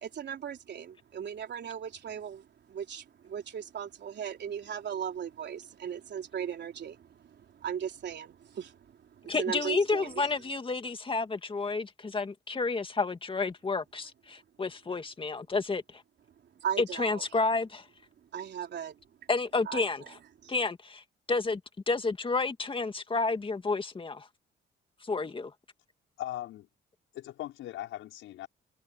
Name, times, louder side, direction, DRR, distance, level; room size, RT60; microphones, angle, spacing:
voice 1, 0.0-10.2 16.6-17.2 18.3-19.0 19.7-19.9 20.4-20.5, right 8 dB, 60° right, 3.7 m, -37 dB
voice 2, 9.3-15.8 16.8-17.8 19.3-20.1 20.5-21.0 21.3-21.6 21.9-24.3 25.0-25.5, left 3 dB, 25° left, 2.3 m, -30 dB
voice 3, 26.2-26.7 27.1-28.5, left 13 dB, 85° left, 5.8 m, -39 dB
cardioid pair, 90°, 20 cm